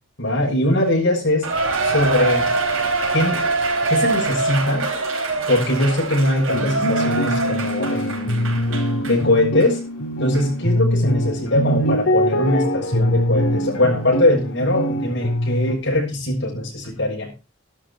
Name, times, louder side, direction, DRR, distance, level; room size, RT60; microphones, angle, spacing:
voice 1, 0.2-1.5 1.8-2.5 3.1-3.4 3.9-4.9 5.5-8.5 9.0-9.8 10.2-17.3, left 1 dB, 55° left, -3 dB, 6.7 m, -21 dB
Cheering, 1.4-9.2 9.6-9.7 10.3-10.4, right 3 dB, 70° right, 4.5 m, -24 dB
sound 1, 6.5-15.8, equal, 70° left, 3.4 m, -23 dB
12.5 x 12.0 x 4.2 m, 0.29 s
head